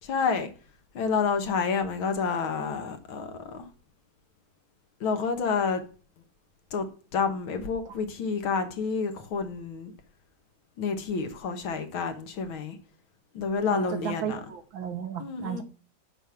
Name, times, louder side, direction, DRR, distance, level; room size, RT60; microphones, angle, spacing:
voice 1, 0.0-0.5 0.9-3.7 5.0-5.8 6.7-6.9 7.1-9.9 10.8-12.8 13.3-14.4 15.2-15.6, left 5 dB, 80° left, 2.2 m, -29 dB
voice 2, 13.7-15.6, right 8 dB, 75° right, 1.9 m, -34 dB
8.2 x 5.5 x 7.3 m
omnidirectional pair, 2.2 m